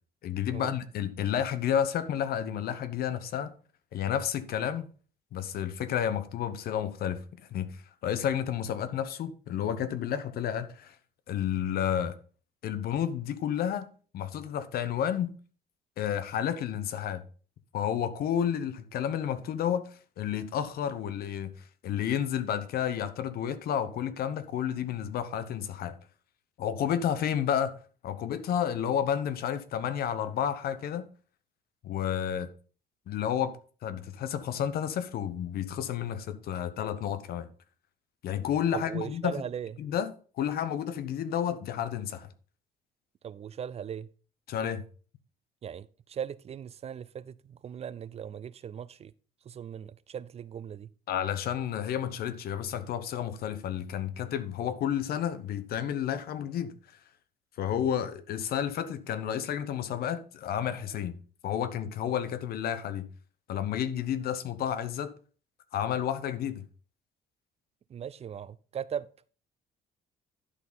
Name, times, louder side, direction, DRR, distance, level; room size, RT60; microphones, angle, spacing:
voice 1, 0.2-3.5 3.9-4.9 5.3-10.9 11.3-12.2 12.6-13.9 14.1-15.3 16.0-17.2 17.7-19.8 20.2-21.5 21.8-26.0 26.6-27.7 28.0-31.1 31.8-32.5 33.1-33.6 33.8-37.5 38.2-39.4 39.8-40.1 40.4-42.3 44.5-44.8 51.1-56.7 57.6-61.2 61.4-63.1 63.5-65.1 65.7-66.6, left 9 dB, 65° left, 1.1 m, -31 dB
voice 2, 38.7-39.7 43.2-44.1 45.6-49.1 49.5-50.9 67.9-69.1, right 8 dB, 40° right, 0.5 m, -38 dB
11.5 x 4.1 x 5.5 m
cardioid pair, 110°, 17 cm